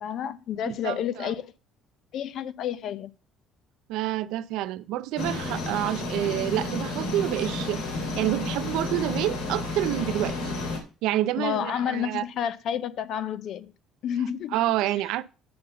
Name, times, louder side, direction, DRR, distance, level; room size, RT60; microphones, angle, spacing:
voice 1, 0.0-1.5 2.1-3.1 11.4-13.7 14.0-14.6, left 9 dB, 45° left, 0.5 m, -30 dB
voice 2, 0.7-1.3 3.9-7.8 8.2-10.4 11.0-12.2 14.5-15.2, right 14 dB, 70° right, 0.5 m, -28 dB
sound 1, 5.2-10.8, left 2 dB, 75° left, 2.1 m, -31 dB
8.6 x 4.0 x 6.7 m
cardioid pair, 180°, 0 cm